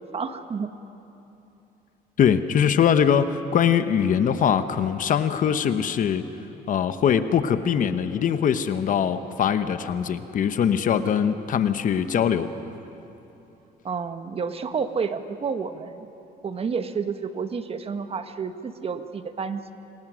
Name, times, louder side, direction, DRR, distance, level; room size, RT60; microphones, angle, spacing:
voice 1, 0.1-0.7 5.6-5.7 13.8-16.1 16.4-19.7, right 5 dB, 35° right, 9 dB, 1.2 m, -30 dB
voice 2, 2.2-6.3 6.7-12.5, left 8 dB, 50° left, 11 dB, 1.0 m, -22 dB
26.5 x 22.0 x 6.3 m, 2.9 s
cardioid pair, 110°, 17 cm